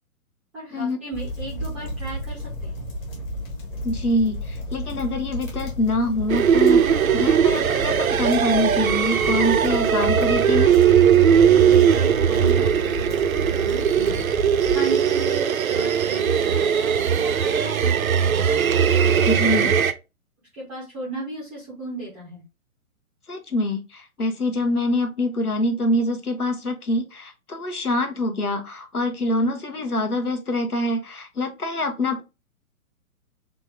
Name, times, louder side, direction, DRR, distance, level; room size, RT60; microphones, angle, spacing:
voice 1, 0.5-2.8 11.5-14.3 14.7-16.7 17.1-18.4 19.0-19.7 20.5-22.4, right 2 dB, 5° right, -7 dB, 0.5 m, -36 dB
sound 1, 1.1-14.8, left 1 dB, 20° left, 1.0 m, -33 dB
voice 2, 3.8-10.7 19.2-19.7 23.3-32.2, left 1 dB, 85° left, 6 dB, 1.0 m, -25 dB
sound 2, 6.3-19.9, right 8 dB, 70° right, 0.6 m, -19 dB
3.6 x 2.7 x 3.3 m, 0.27 s
figure-of-eight pair, 125°, 44 cm